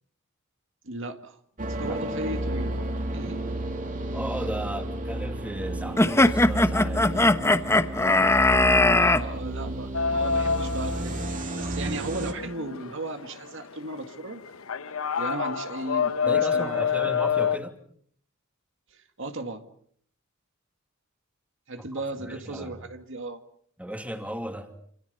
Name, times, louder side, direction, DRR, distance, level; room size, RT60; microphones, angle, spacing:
voice 1, 0.8-1.4 1.7-2.8 3.1-3.4 8.9-14.4 15.2-17.1 18.9-19.7 21.7-23.4, right 2 dB, 65° right, 7 dB, 2.1 m, -36 dB
sound 1, 1.6-12.3, right 1 dB, 40° right, 3.0 m, -32 dB
voice 2, 4.1-7.3 16.3-17.8 22.2-22.8 23.8-24.7, equal, 5° right, 6 dB, 2.5 m, -35 dB
sound 2, 6.0-9.2, left 2 dB, 15° left, 1.1 m, -20 dB
sound 3, 9.9-17.6, left 6 dB, 90° left, 1.0 m, -28 dB
28.5 x 27.5 x 5.5 m, 0.63 s
head